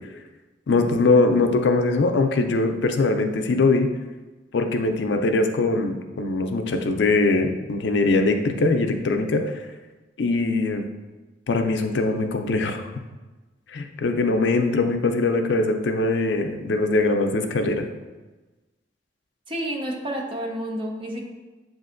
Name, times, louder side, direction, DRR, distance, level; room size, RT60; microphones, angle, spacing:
voice 1, 0.7-3.9 4.5-9.4 10.2-10.8 11.5-12.9 13.7-17.9, left 3 dB, 70° left, 6 dB, 0.4 m, -22 dB
voice 2, 19.5-21.2, right 1 dB, 30° right, 0 dB, 0.7 m, -30 dB
7.5 x 2.5 x 2.5 m, 1.2 s
head